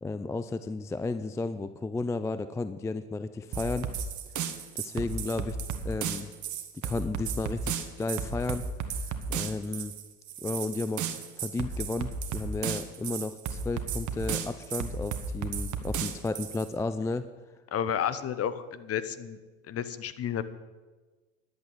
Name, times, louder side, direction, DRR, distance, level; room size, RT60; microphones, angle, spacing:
voice 1, 0.0-3.9 4.8-5.6 5.8-6.3 6.8-8.7 9.3-9.9 10.4-11.1 11.4-17.3, left 3 dB, 10° left, 12 dB, 0.3 m, -33 dB
sound 1, 3.5-16.7, right 6 dB, 50° right, 1.4 m, -34 dB
voice 2, 17.7-19.4 19.7-20.4, left 9 dB, 35° left, 14 dB, 1.0 m, -31 dB
11.0 x 8.0 x 8.1 m, 1.3 s
hypercardioid pair, 85°, 39 cm